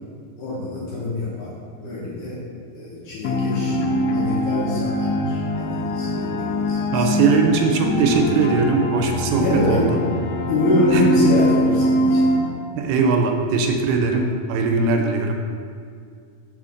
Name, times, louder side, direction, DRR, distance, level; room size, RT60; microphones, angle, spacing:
voice 1, 0.4-1.5 1.8-2.4 2.7-3.8 4.1-7.2 9.4-9.9 10.5-12.3, left 1 dB, 65° left, -7 dB, 2.3 m, -24 dB
sound 1, 3.2-12.4, equal, 80° left, 2.3 m, -22 dB
voice 2, 6.9-9.9 10.9-11.0 12.8-15.4, right 4 dB, 80° right, 3 dB, 2.5 m, -20 dB
5.6 x 4.4 x 6.3 m, 2.2 s
omnidirectional pair, 4.6 m